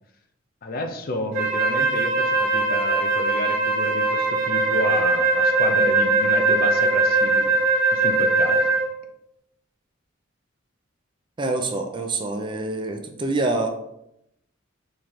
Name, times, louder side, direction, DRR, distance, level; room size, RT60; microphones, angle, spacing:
voice 1, 0.6-7.6 7.9-8.7, left 1 dB, 45° left, 6 dB, 0.5 m, -30 dB
Wind instrument woodwind instrument, 1.3-9.0, right 3 dB, 45° right, 1.4 m, -21 dB
voice 2, 11.4-13.7, right 2 dB, 25° right, 4 dB, 0.4 m, -26 dB
3.9 x 3.2 x 4.3 m, 0.81 s
head